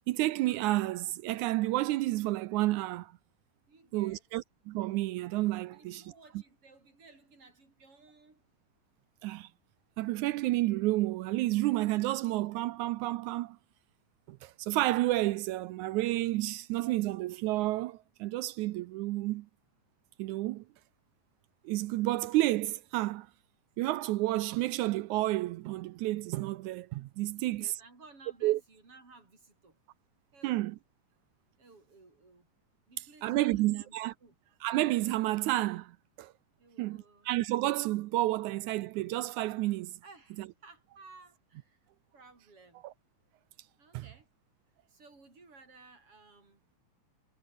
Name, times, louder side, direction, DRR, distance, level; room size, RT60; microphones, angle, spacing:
voice 1, 0.1-3.1 3.9-6.0 9.2-9.5 10.0-13.6 14.3-19.5 20.2-20.6 21.7-23.3 23.8-27.7 28.4-28.6 30.4-30.8 33.2-34.1 34.6-35.9 36.2-36.3 36.8-39.9 42.8-42.9 43.9-44.0, right 17 dB, 80° right, 1.9 m, -30 dB
voice 2, 3.7-4.2 5.7-8.4 27.2-29.8 30.3-30.6 31.6-32.5 32.9-34.0 34.2-34.4 36.6-37.3 40.0-41.8 42.1-42.8 43.8-44.3 44.9-46.6, right 3 dB, 40° right, 8.6 m, -57 dB
omnidirectional pair, 3.7 m